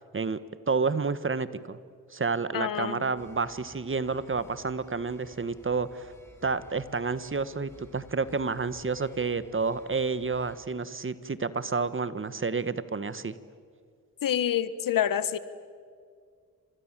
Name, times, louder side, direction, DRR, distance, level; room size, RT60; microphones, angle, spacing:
voice 1, 0.7-1.8 2.1-6.1 6.4-13.4, right 4 dB, 40° right, 14 dB, 1.5 m, -30 dB
voice 2, 2.5-3.0 14.2-15.4, left 10 dB, 75° left, 15 dB, 1.3 m, -27 dB
sound 1, 3.2-10.6, equal, 5° left, 6.4 m, -55 dB
30.0 x 26.0 x 7.6 m, 2.1 s
cardioid pair, 55°, 33 cm